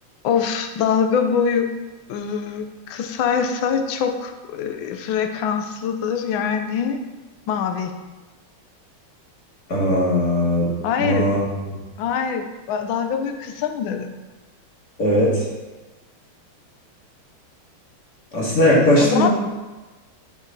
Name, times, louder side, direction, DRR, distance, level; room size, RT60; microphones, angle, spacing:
voice 1, 0.2-1.7 2.1-7.0 7.5-7.9 10.8-11.3 12.0-14.1 19.0-19.3, left 7 dB, 70° left, 6 dB, 1.5 m, -23 dB
voice 2, 9.7-10.7 11.0-11.4 11.7-11.8 15.0-15.5 18.3-19.3, left 1 dB, 50° left, -5 dB, 2.8 m, -18 dB
8.8 x 6.3 x 4.0 m, 1.2 s
omnidirectional pair, 2.3 m